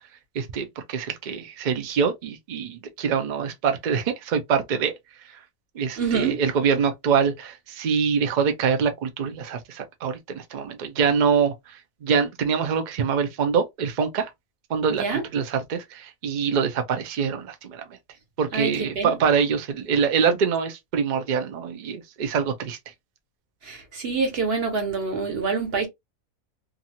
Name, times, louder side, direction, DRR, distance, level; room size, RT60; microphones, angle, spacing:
voice 1, 0.3-4.9 5.8-14.3 14.7-17.8 18.4-22.8, right 6 dB, 85° right, 0.4 m, -25 dB
voice 2, 6.0-6.4 14.9-15.2 18.5-19.2 23.6-25.9, right 4 dB, 45° right, 1.2 m, -26 dB
2.6 x 2.4 x 2.8 m
omnidirectional pair, 1.5 m